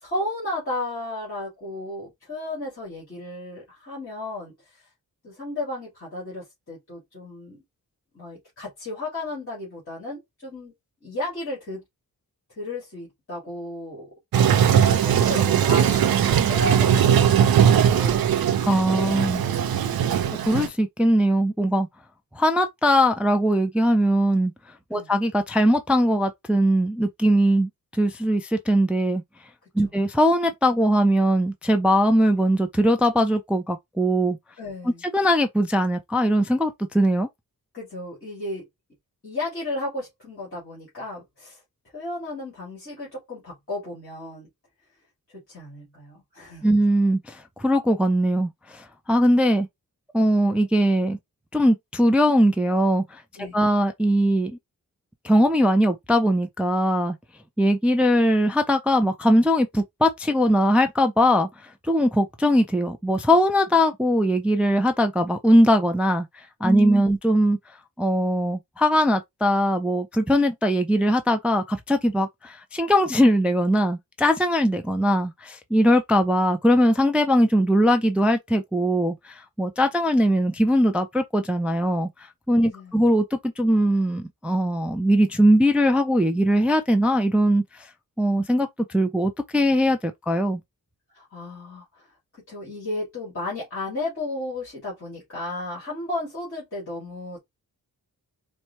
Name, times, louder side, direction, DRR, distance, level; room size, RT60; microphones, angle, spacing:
voice 1, 0.0-4.8 5.2-7.6 8.1-10.7 11.0-11.8 12.6-14.1 14.6-18.2 20.2-20.3 24.9-25.1 29.8-29.9 34.6-35.0 37.7-38.6 39.2-41.6 41.9-44.5 45.5-46.8 53.3-53.5 66.6-67.1 82.7-83.0 91.1-92.1 92.5-97.4, left 2 dB, 35° left, 2.2 m, -34 dB
Toilet flush, 14.3-20.7, right 9 dB, 70° right, 0.5 m, -19 dB
voice 2, 18.7-19.4 20.4-21.9 22.4-24.5 24.9-29.2 29.8-34.4 35.1-37.3 46.6-49.7 50.1-51.2 51.5-53.2 53.5-54.6 55.2-57.2 57.6-61.5 61.9-66.3 66.6-67.6 68.0-82.1 82.5-87.6 88.2-90.6, equal, 5° right, 0.3 m, -20 dB
4.5 x 2.1 x 2.7 m
wide cardioid pair, 150°, 37 cm